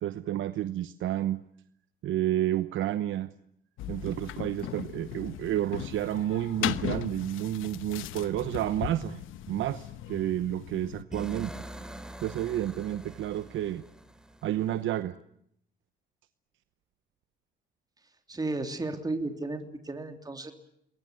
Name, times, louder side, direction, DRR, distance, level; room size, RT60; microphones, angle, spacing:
voice 1, 0.0-1.4 2.0-3.3 3.9-9.2 9.5-11.5 12.2-13.8 14.4-15.2, right 12 dB, 80° right, 13 dB, 0.9 m, -30 dB
sound 1, 3.8-11.0, left 13 dB, 90° left, 1.1 m, -37 dB
sound 2, 11.1-15.0, right 1 dB, 5° right, 2.9 m, -44 dB
voice 2, 18.3-20.5, right 2 dB, 20° right, 6 dB, 3.3 m, -33 dB
28.0 x 21.5 x 7.6 m, 0.72 s
cardioid pair, 90°, 20 cm